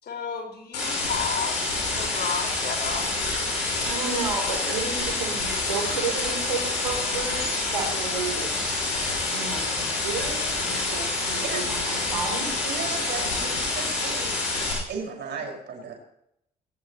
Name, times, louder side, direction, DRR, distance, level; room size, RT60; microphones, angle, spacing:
voice 1, 0.0-3.1, left 6 dB, 50° left, 2 dB, 5.4 m, -32 dB
sound 1, 0.7-14.7, left 3 dB, 85° left, 6.0 m, -27 dB
voice 2, 3.8-8.8 9.3-12.5, right 4 dB, 90° right, 1 dB, 3.7 m, -32 dB
voice 3, 12.6-14.3 14.9-15.9, right 5 dB, 60° right, 0 dB, 5.7 m, -35 dB
22.5 x 18.5 x 3.2 m, 0.76 s
hypercardioid pair, 45°, 20 cm